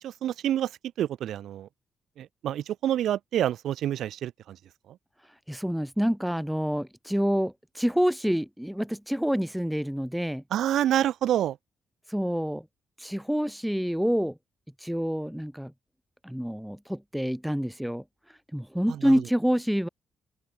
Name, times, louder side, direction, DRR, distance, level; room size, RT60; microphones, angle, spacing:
voice 1, 0.0-1.7 2.2-4.6 4.9-5.0 10.5-11.6 18.9-19.2, right 11 dB, 75° right, 1.9 m, -28 dB
voice 2, 5.5-10.4 12.1-12.7 13.0-14.4 14.8-15.7 16.2-18.0 18.5-19.9, equal, ahead, 5.7 m, -27 dB
open air
cardioid pair, 90°, 0 cm